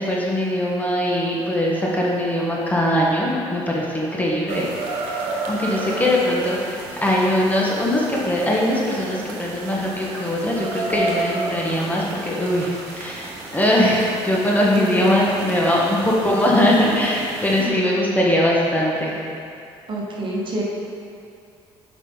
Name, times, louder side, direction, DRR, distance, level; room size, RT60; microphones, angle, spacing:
voice 1, 0.0-4.7 5.0-19.2, left 1 dB, 15° left, -4 dB, 1.3 m, -21 dB
sound 1, 4.5-17.7, right 3 dB, 90° right, 1.1 m, -32 dB
voice 2, 14.7-15.2 19.9-20.6, right 1 dB, 45° right, -4 dB, 1.5 m, -27 dB
8.4 x 5.2 x 3.9 m, 2.5 s
cardioid pair, 95°, 11 cm